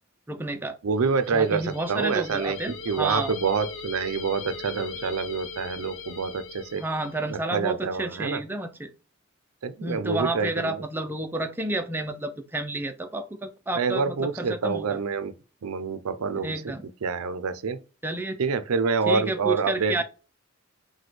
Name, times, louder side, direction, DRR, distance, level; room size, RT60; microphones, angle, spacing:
voice 1, 0.3-0.8 1.3-3.3 6.8-8.9 9.8-15.0 16.3-16.9 18.0-18.4 19.1-20.0, right 2 dB, 10° right, 0.4 m, -30 dB
voice 2, 0.8-2.6 2.9-6.8 7.3-8.4 9.6-10.8 13.8-15.3 15.6-16.7 17.0-17.8 18.4-20.0, right 5 dB, 85° right, 0.5 m, -27 dB
sound 1, 1.0-7.4, left 5 dB, 60° left, 0.6 m, -40 dB
6.0 x 2.2 x 3.2 m
head